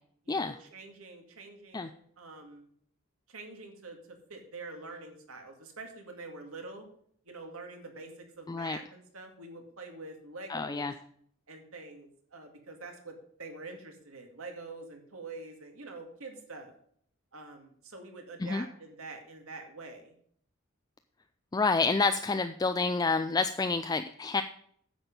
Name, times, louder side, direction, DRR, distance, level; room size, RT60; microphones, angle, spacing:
voice 1, 0.2-2.7 3.3-6.9 7.3-10.9 11.5-16.7 17.3-20.2, right 3 dB, 80° right, 4 dB, 2.2 m, -46 dB
voice 2, 8.5-8.8 10.5-10.9 18.4-18.6 21.5-24.4, left 4 dB, 20° left, 8 dB, 0.3 m, -28 dB
10.0 x 7.2 x 5.3 m, 0.63 s
head